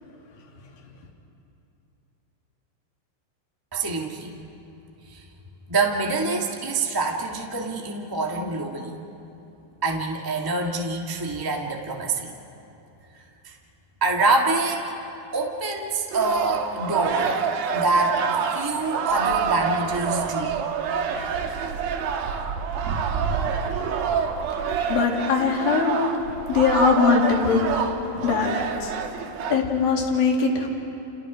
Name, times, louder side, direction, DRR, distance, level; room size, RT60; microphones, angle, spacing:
voice 1, 3.7-4.3 5.1-5.2 5.7-8.9 9.8-12.3 13.4-13.5 14.0-14.9 15.3-17.4 17.7-18.2 18.5-20.5 28.1-28.2, right 3 dB, 20° right, -1 dB, 0.5 m, -25 dB
sound 1, 16.1-29.6, right 6 dB, 80° right, 3.1 m, -27 dB
voice 2, 24.9-26.0 26.5-27.7 28.2-29.0 29.5-30.7, left 5 dB, 75° left, 0 dB, 4.3 m, -21 dB
30.0 x 29.5 x 5.1 m, 2.8 s
omnidirectional pair, 4.2 m